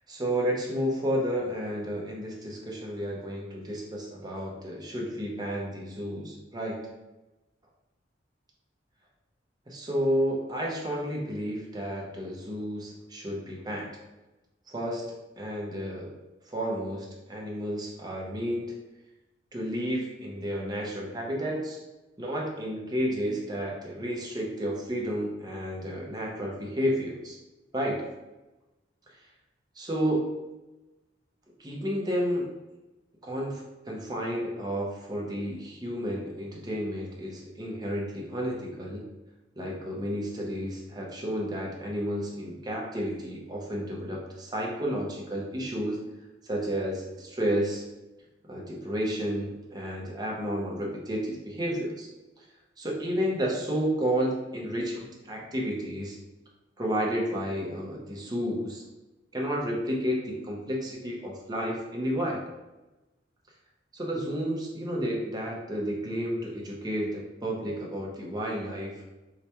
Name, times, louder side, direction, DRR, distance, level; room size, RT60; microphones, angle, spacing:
voice 1, 0.1-6.8 9.7-14.0 14.7-15.1 15.4-16.1 16.5-18.8 19.5-21.8 22.2-27.4 27.7-28.0 29.8-30.3 31.6-32.5 33.2-39.1 39.6-46.0 46.4-47.8 48.4-52.1 52.4-52.5 52.8-56.2 56.8-58.8 59.3-62.4 63.9-69.0, equal, 20° right, -2 dB, 0.7 m, -31 dB
4.7 x 2.2 x 2.8 m, 1.0 s
head